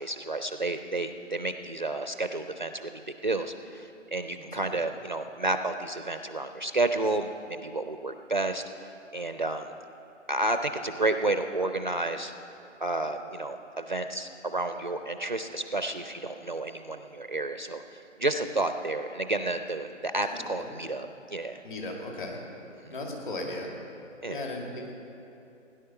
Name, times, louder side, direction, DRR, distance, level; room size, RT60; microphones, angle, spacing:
voice 1, 0.0-9.7 10.3-12.3 12.8-21.6 22.8-22.9 24.2-24.4, right 2 dB, 40° right, 8 dB, 0.4 m, -31 dB
voice 2, 4.3-4.8 20.3-20.7 21.6-22.4 22.9-23.7 24.3-24.9, left 2 dB, 40° left, 0 dB, 2.4 m, -37 dB
17.0 x 10.5 x 5.7 m, 2.8 s
figure-of-eight pair, 165°, 38 cm